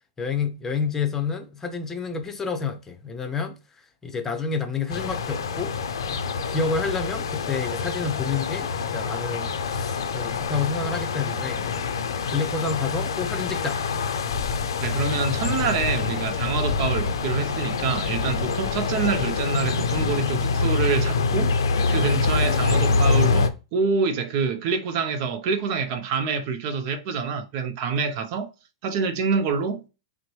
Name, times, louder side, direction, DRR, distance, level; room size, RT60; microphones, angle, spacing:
voice 1, 0.2-3.6 4.0-5.7 6.4-11.6 12.3-13.8, left 5 dB, 15° left, 0.7 m, -29 dB
sound 1, 4.9-23.5, left 4 dB, 85° left, 0.5 m, -25 dB
voice 2, 14.8-28.5 28.8-29.8, right 5 dB, 50° right, 0.6 m, -26 dB
5.7 x 2.1 x 3.1 m
hypercardioid pair, 120°, 2 cm